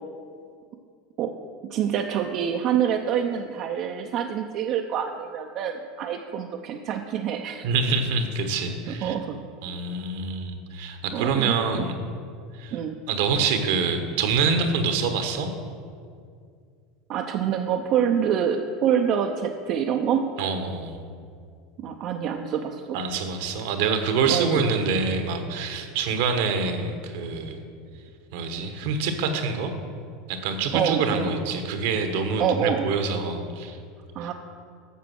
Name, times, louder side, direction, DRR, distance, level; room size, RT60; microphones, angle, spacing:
voice 1, 1.6-7.7 9.0-9.4 11.1-11.9 12.7-13.0 17.1-20.3 21.8-23.0 24.3-24.6 30.7-31.3 32.4-32.9 34.1-34.3, right 8 dB, 55° right, 3 dB, 0.6 m, -26 dB
voice 2, 7.6-9.1 9.6-11.9 12.6-12.8 13.1-15.5 20.4-21.0 22.9-27.6 28.3-29.7 30.3-33.8 34.2-34.3, right 4 dB, 70° right, 7 dB, 1.1 m, -26 dB
8.4 x 6.7 x 6.3 m, 2.2 s
hypercardioid pair, 90°, 0 cm